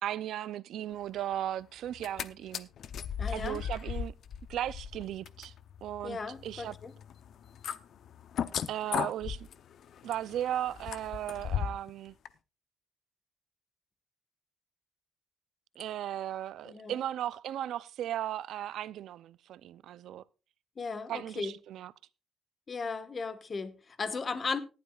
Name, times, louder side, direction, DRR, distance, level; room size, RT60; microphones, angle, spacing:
voice 1, 0.0-2.7 3.3-4.1 4.5-5.5 5.8-6.8 8.7-9.5 10.0-12.1 15.8-20.2 21.1-21.9, right 11 dB, 80° right, 0.5 m, -36 dB
sound 1, 1.9-2.3 2.5-11.9 12.3-12.4, left 8 dB, 65° left, 0.7 m, -37 dB
voice 2, 3.2-3.6 6.0-6.9 16.6-17.0 20.8-21.5 22.7-24.6, left 4 dB, 40° left, 1.4 m, -36 dB
18.0 x 11.5 x 2.4 m
cardioid pair, 90°, 0 cm